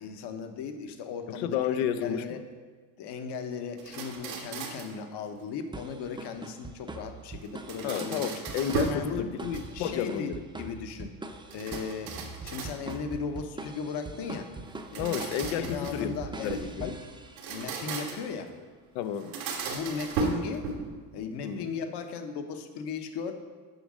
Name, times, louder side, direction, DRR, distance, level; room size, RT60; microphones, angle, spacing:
voice 1, 0.0-1.6 2.0-2.4 3.0-8.3 8.9-9.2 9.7-11.1 11.5-12.2 12.4-14.5 14.9-15.3 15.5-17.0 17.5-18.5 19.7-20.6 21.1-23.3, left 6 dB, 60° left, 7 dB, 1.0 m, -37 dB
voice 2, 1.3-2.4 7.8-10.4 15.0-17.0 18.9-19.4 21.4-21.7, left 9 dB, 80° left, 11 dB, 0.7 m, -31 dB
sound 1, 3.8-5.0 7.4-9.1 9.4-10.0 11.5-13.1 14.7-16.7 17.3-18.4 19.1-21.0, right 4 dB, 85° right, 1.7 m, -35 dB
sound 2, 5.7-17.7, right 3 dB, 10° right, 0.6 m, -43 dB
7.8 x 5.2 x 6.2 m, 1.5 s
supercardioid pair, 105°, 47 cm